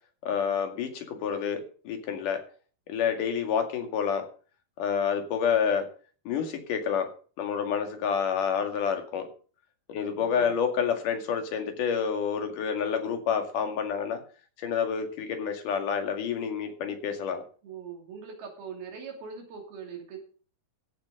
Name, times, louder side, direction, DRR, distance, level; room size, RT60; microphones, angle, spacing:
voice 1, 0.2-2.4 2.9-4.2 4.8-5.9 6.3-7.1 7.4-9.3 9.9-14.2 14.6-17.4, left 7 dB, 60° left, 5 dB, 3.5 m, -28 dB
voice 2, 10.2-10.6 17.6-20.2, right 6 dB, 90° right, 1 dB, 4.8 m, -41 dB
15.0 x 7.4 x 6.5 m, 0.41 s
omnidirectional pair, 4.3 m